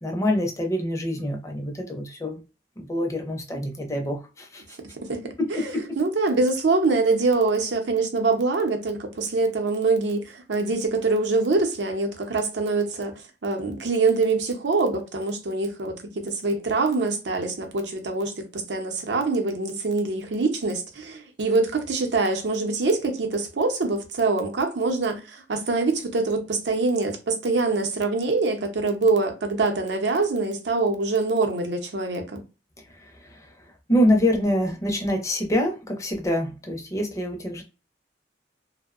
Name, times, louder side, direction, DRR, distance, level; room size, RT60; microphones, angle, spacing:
voice 1, 0.0-2.4 2.8-4.6 5.4-6.0 33.0-33.5 33.9-37.6, equal, 20° left, 0.4 m, -25 dB
voice 2, 6.0-13.1 13.4-32.4, right 3 dB, 80° right, 0.6 m, -24 dB
2.6 x 2.0 x 2.4 m
head